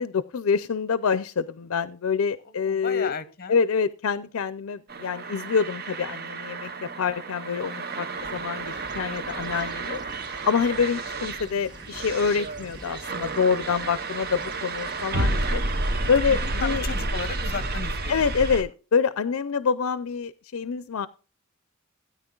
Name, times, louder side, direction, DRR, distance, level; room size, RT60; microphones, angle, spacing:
voice 1, 0.0-3.1 3.5-10.0 10.5-15.6 16.1-16.8 18.1-21.1, left 6 dB, 75° left, 14 dB, 0.5 m, -26 dB
voice 2, 2.4-3.6 8.1-8.4 11.5-11.6 16.3-18.3, left 5 dB, 45° left, 12 dB, 1.0 m, -35 dB
sound 1, 4.9-18.6, right 2 dB, 45° right, 0.9 m, -31 dB
sound 2, 8.1-17.6, equal, 20° right, 1.3 m, -46 dB
16.5 x 9.3 x 2.3 m, 0.33 s
head